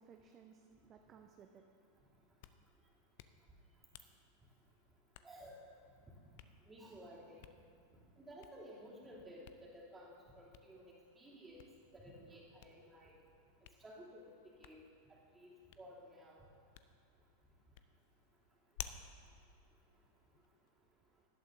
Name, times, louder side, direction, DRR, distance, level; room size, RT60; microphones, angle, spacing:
voice 1, 0.0-1.6 19.7-21.3, right 7 dB, 30° right, 4 dB, 0.6 m, -63 dB
Hands, 2.2-20.7, left 11 dB, 50° left, 0.5 m, -58 dB
voice 2, 5.2-5.6 6.7-7.5 8.2-10.8 11.2-11.6 11.9-13.1 13.8-14.3 14.6-14.8 15.3-16.4, equal, 15° right, -6 dB, 2.9 m, -54 dB
18.0 x 11.5 x 2.7 m, 2.3 s
figure-of-eight pair, 90°, 0 cm